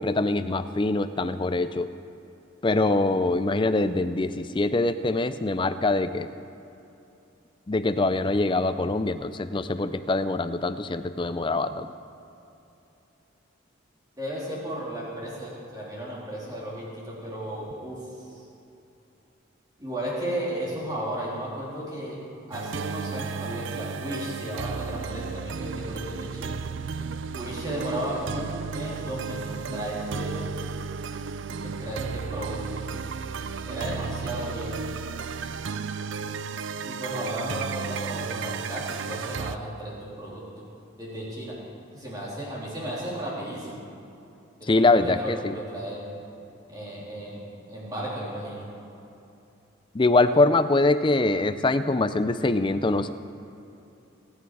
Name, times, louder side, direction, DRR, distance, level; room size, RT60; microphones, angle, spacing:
voice 1, 0.0-1.9 2.6-6.3 7.7-11.9 44.7-45.6 49.9-53.1, left 2 dB, 25° left, 11 dB, 0.4 m, -23 dB
voice 2, 14.2-18.4 19.8-22.2 22.5-26.6 27.4-30.4 31.6-32.8 33.6-34.9 36.8-40.6 41.0-41.6 41.9-43.8 44.6-46.2 46.7-48.7, right 1 dB, 20° right, -6 dB, 3.3 m, -34 dB
sound 1, 22.5-39.6, right 5 dB, 60° right, 0.4 m, -34 dB
23.5 x 9.3 x 4.8 m, 2.8 s
head